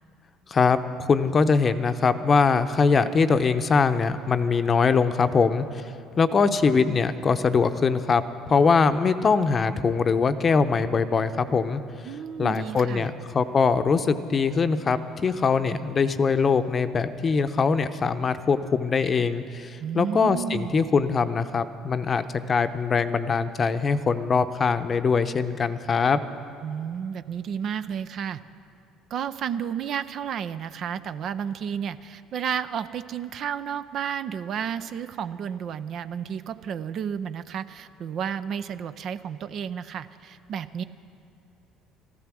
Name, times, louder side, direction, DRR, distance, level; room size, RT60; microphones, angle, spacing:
voice 1, 0.5-5.6 6.2-11.8 12.4-26.2, left 5 dB, 35° left, 10 dB, 0.7 m, -22 dB
voice 2, 12.0-13.1 19.8-20.8 26.6-28.4 29.1-40.8, right 8 dB, 55° right, 13 dB, 0.5 m, -32 dB
14.0 x 13.5 x 6.2 m, 2.5 s
hypercardioid pair, 60°, 0 cm